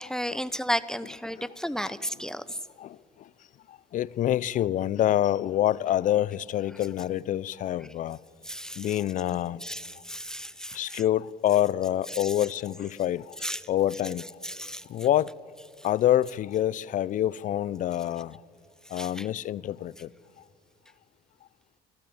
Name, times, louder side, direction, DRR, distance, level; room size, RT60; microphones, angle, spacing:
voice 1, 0.0-2.4 8.5-8.9 9.6-11.0 12.1-12.3 13.4-13.6 14.4-14.8 18.9-19.3, equal, 5° left, 0.8 m, -33 dB
voice 2, 3.9-8.2 8.8-9.6 10.7-13.4 13.7-14.2 14.9-15.3 15.8-18.4 18.9-20.1, left 12 dB, 55° left, 0.6 m, -26 dB
26.0 x 16.0 x 8.8 m
supercardioid pair, 80°, 16 cm